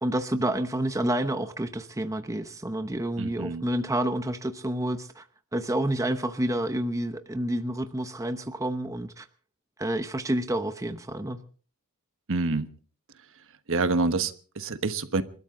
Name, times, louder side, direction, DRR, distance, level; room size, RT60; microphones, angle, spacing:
voice 1, 0.0-5.3 5.5-9.3 9.8-11.4, right 1 dB, 15° right, 9 dB, 0.9 m, -29 dB
voice 2, 3.2-3.6 12.3-12.7 13.7-15.2, right 3 dB, 60° right, 10 dB, 1.3 m, -27 dB
28.0 x 13.5 x 3.8 m, 0.42 s
head